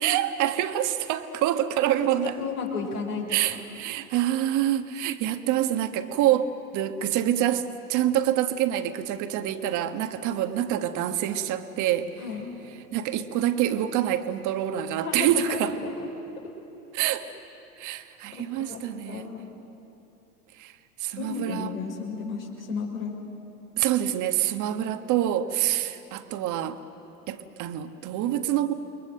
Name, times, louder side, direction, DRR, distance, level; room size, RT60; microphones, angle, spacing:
voice 1, 0.0-2.4 3.3-12.1 12.9-15.7 16.9-17.3 17.8-19.3 20.6-20.7 21.0-21.7 23.8-26.8 27.3-28.7, right 11 dB, 40° right, 9 dB, 1.4 m, -26 dB
voice 2, 2.0-3.6 12.2-12.5 15.0-16.1 18.3-19.5 21.2-23.1, left 4 dB, 80° left, -2 dB, 5.2 m, -33 dB
29.5 x 22.5 x 6.5 m, 2.9 s
figure-of-eight pair, 85°, 46 cm